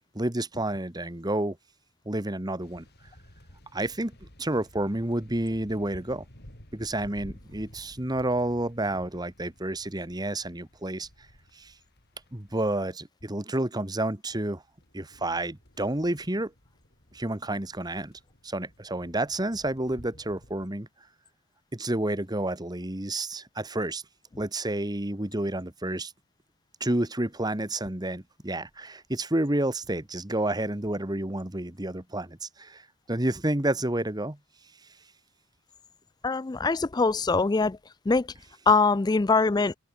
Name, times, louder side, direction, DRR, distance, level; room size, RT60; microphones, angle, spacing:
voice 1, 0.1-1.6 2.0-2.8 3.7-4.1 4.4-6.2 6.7-11.1 11.5-11.7 12.3-14.6 14.9-16.5 17.1-18.1 18.4-20.9 21.7-24.0 24.4-26.1 26.8-34.4, right 1 dB, 20° right, 1.5 m, -30 dB
sound 1, 2.6-12.8 14.5-20.7, equal, 50° left, 6.2 m, -53 dB
voice 2, 36.2-37.8 38.1-38.3 38.7-39.7, left 4 dB, 20° left, 0.3 m, -23 dB
head